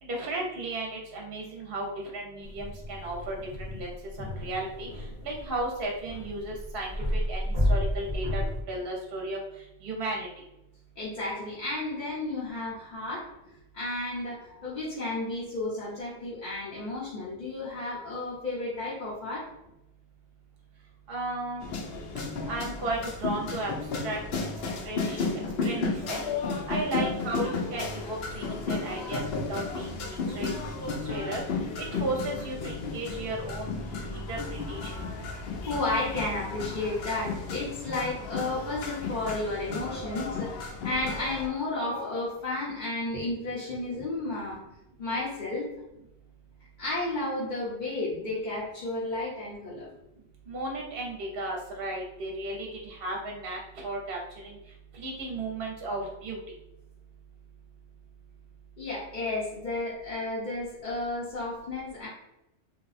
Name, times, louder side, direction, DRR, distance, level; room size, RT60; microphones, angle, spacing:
voice 1, 0.0-3.9 4.2-8.4 8.7-9.4 9.8-10.3 21.1-21.6 22.4-23.7 24.0-24.2 24.8-25.3 25.6-26.2 26.7-29.2 29.5-31.4 31.8-33.7 34.1-35.0 50.5-54.6 54.9-56.4, right 2 dB, 65° right, 0 dB, 0.8 m, -34 dB
sound 1, 2.4-8.6, equal, 20° left, 0.9 m, -31 dB
voice 2, 11.0-13.3 13.7-19.5 34.1-34.3 35.7-44.6 45.0-45.7 46.8-49.9 58.8-62.1, left 2 dB, 50° left, -9 dB, 1.0 m, -32 dB
sound 2, 21.6-41.5, left 4 dB, 70° left, 0.8 m, -33 dB
2.7 x 2.2 x 4.0 m, 0.86 s
omnidirectional pair, 1.1 m